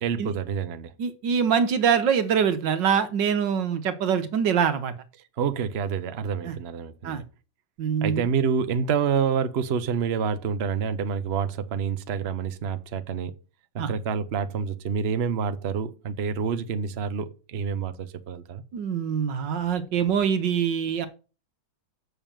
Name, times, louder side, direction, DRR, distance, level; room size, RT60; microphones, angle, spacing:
voice 1, 0.0-0.9 5.4-7.2 8.0-13.3 13.7-18.6, right 6 dB, 45° right, 1.0 m, -28 dB
voice 2, 1.0-4.9 6.4-6.6 7.0-7.2 7.8-8.3 13.8-13.9 18.7-21.1, right 7 dB, 85° right, 1.8 m, -24 dB
7.2 x 6.5 x 7.4 m
omnidirectional pair, 1.9 m